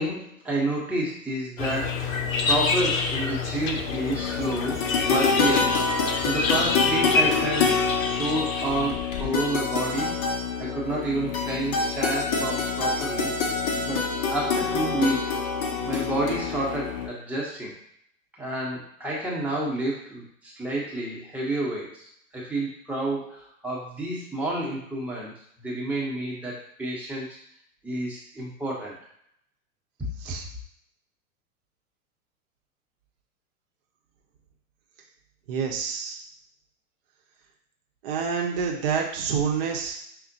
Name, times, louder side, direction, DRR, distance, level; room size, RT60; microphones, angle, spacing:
voice 1, 0.0-2.0 2.4-5.8 6.2-10.1 10.6-13.3 13.9-15.4 15.9-17.7 18.4-22.1 22.3-25.3 25.6-27.3 27.8-29.0, right 2 dB, 5° right, -5 dB, 0.9 m, -30 dB
sound 1, 1.6-9.5, left 4 dB, 65° left, 0.6 m, -28 dB
sound 2, 3.9-17.1, left 5 dB, 30° left, 0.6 m, -26 dB
voice 2, 35.5-36.2 38.0-40.0, right 6 dB, 40° right, 1 dB, 0.8 m, -27 dB
5.6 x 2.1 x 2.7 m, 0.69 s
figure-of-eight pair, 95°, 42 cm